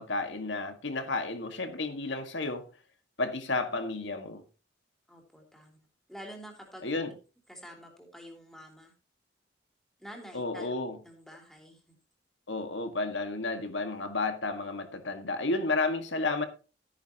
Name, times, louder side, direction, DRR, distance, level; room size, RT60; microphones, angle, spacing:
voice 1, 0.0-2.6 3.2-4.4 6.8-7.1 10.3-11.0 12.5-16.5, left 3 dB, 75° left, 1.7 m, -32 dB
voice 2, 5.1-7.1 7.5-8.9 10.0-11.9, equal, ahead, 3.1 m, -48 dB
13.5 x 10.0 x 2.9 m
head